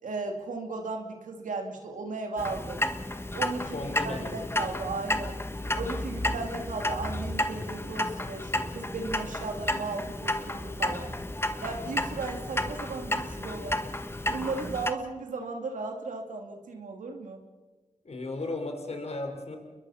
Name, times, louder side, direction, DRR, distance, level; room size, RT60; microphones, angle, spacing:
voice 1, 0.0-2.8 3.3-3.8 4.0-5.4 5.7-11.1 11.6-13.8 14.3-17.4, right 3 dB, 85° right, 3 dB, 2.6 m, -35 dB
Clock, 2.4-14.9, left 1 dB, 20° left, 1.5 m, -32 dB
voice 2, 3.7-4.5 18.0-19.6, left 2 dB, 55° left, 4 dB, 5.0 m, -35 dB
29.0 x 22.0 x 5.8 m, 1.3 s
cardioid pair, 60°, 13 cm